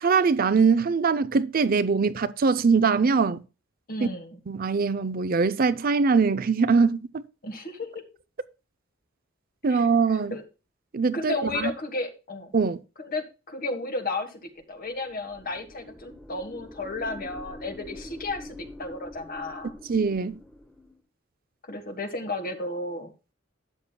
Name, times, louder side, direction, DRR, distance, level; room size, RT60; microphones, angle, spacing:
voice 1, 0.0-3.4 4.5-7.2 9.6-10.3 10.9-11.7 12.5-12.8 19.9-20.4, right 5 dB, 45° right, 0.6 m, -22 dB
voice 2, 3.9-4.4 7.4-7.9 9.7-10.4 11.1-12.5 13.1-14.4 14.7-19.7 21.7-23.1, left 2 dB, 45° left, 1.6 m, -33 dB
sound 1, 14.9-21.0, left 1 dB, 5° left, 0.9 m, -45 dB
12.5 x 8.6 x 2.3 m
head